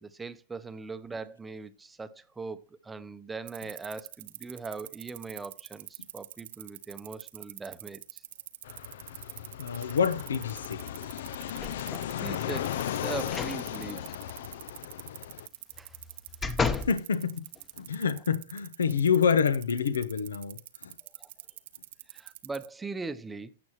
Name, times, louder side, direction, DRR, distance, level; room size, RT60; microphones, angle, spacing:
voice 1, 0.0-8.2 11.7-11.9 12.2-14.1 15.8-15.9 21.2-21.3 22.1-23.5, right 4 dB, 10° right, 0.8 m, -40 dB
sound 1, 3.5-22.7, right 14 dB, 60° right, 0.7 m, -44 dB
Fixed-wing aircraft airplane, 8.6-15.5, left 11 dB, 65° left, 0.5 m, -36 dB
voice 2, 9.6-10.9 16.9-17.4 17.8-20.9, left 6 dB, 80° left, 0.9 m, -27 dB
sound 2, 11.6-12.1 13.2-13.6 14.0-14.1 15.7-17.0 17.6-17.7, left 4 dB, 15° left, 1.0 m, -32 dB
15.5 x 6.1 x 3.0 m
hypercardioid pair, 115°, 0 cm